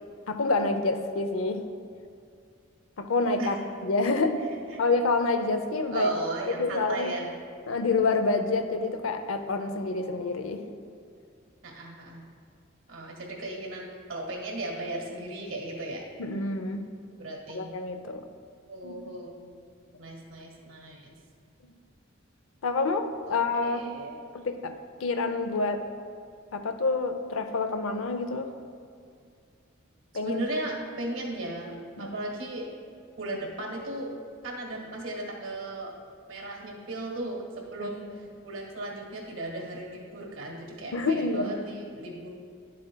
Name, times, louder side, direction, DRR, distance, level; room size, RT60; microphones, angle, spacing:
voice 1, 0.3-1.6 3.0-3.6 3.8-4.4 4.8-6.1 6.6-7.1 7.7-10.6 16.2-16.9 17.5-18.2 18.8-19.0 21.6-21.7 22.6-23.9 24.3-25.8 26.5-28.5 30.1-30.4 32.0-32.2 37.8-38.2 40.9-41.5, left 3 dB, 80° left, 8 dB, 0.6 m, -27 dB
voice 2, 5.9-7.3 11.6-12.3 12.9-16.1 17.2-17.7 18.7-19.5 20.0-21.2 23.3-24.2 30.2-32.7 33.2-34.1 34.4-35.9 36.3-42.3, right 1 dB, 75° right, 0 dB, 1.5 m, -36 dB
11.0 x 7.5 x 2.2 m, 2.3 s
head